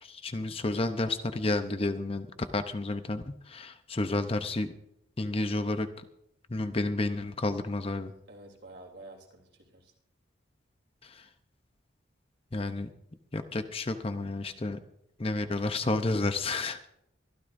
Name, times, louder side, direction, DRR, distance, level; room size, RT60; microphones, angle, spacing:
voice 1, 0.0-4.7 5.2-5.9 6.5-8.1 11.0-11.3 12.5-12.9 13.3-14.8 15.2-17.0, left 2 dB, 30° left, 9 dB, 0.7 m, -31 dB
voice 2, 8.3-9.9, right 2 dB, 55° right, 1 dB, 3.4 m, -49 dB
24.0 x 13.5 x 2.6 m, 0.78 s
head